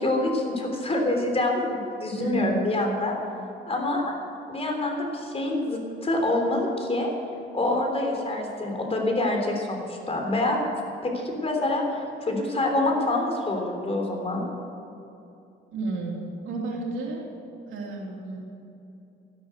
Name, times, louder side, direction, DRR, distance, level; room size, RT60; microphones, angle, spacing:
voice 1, 0.0-3.2 3.7-4.1 4.5-7.1 7.5-10.6 11.0-11.8 12.2-14.4, left 2 dB, 30° left, 2 dB, 3.5 m, -26 dB
voice 2, 2.2-2.6 15.7-16.2 16.4-17.3 17.6-18.4, right 3 dB, 85° right, -1 dB, 3.0 m, -31 dB
12.5 x 12.0 x 8.0 m, 2.8 s
cardioid pair, 90°, 20 cm